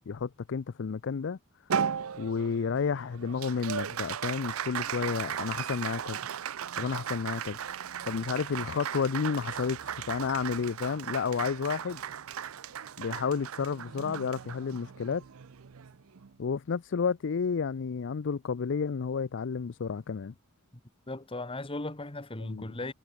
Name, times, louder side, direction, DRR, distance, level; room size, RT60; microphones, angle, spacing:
voice 1, 0.0-1.4 2.2-6.2 6.8-7.6 8.0-9.8 10.1-12.0 13.0-15.2 16.4-20.3 22.4-22.6, left 5 dB, 60° left, 0.5 m, -31 dB
Applause, 1.7-16.3, right 8 dB, 80° right, 0.6 m, -37 dB
voice 2, 21.1-22.9, left 2 dB, 25° left, 1.8 m, -37 dB
head